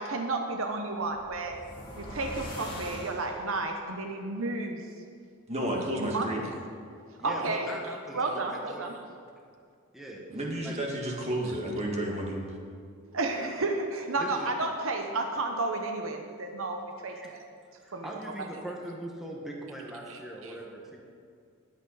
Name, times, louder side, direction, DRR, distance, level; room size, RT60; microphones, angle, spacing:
voice 1, 0.0-1.6 2.0-4.8 5.9-6.3 7.2-7.7 8.1-9.0 13.1-17.4 17.9-18.1 20.1-20.5, right 2 dB, 65° right, 4 dB, 0.9 m, -32 dB
sound 1, 0.9-3.8, left 1 dB, 20° left, 2.3 m, -42 dB
voice 2, 5.5-6.4 10.3-12.4, right 1 dB, 30° right, -1 dB, 1.9 m, -31 dB
voice 3, 7.2-8.8 9.9-10.2 10.6-10.7 14.2-14.5 17.1-17.3 17.8-21.0, right 1 dB, ahead, -2 dB, 1.4 m, -41 dB
20.0 x 8.1 x 4.1 m, 2.3 s
head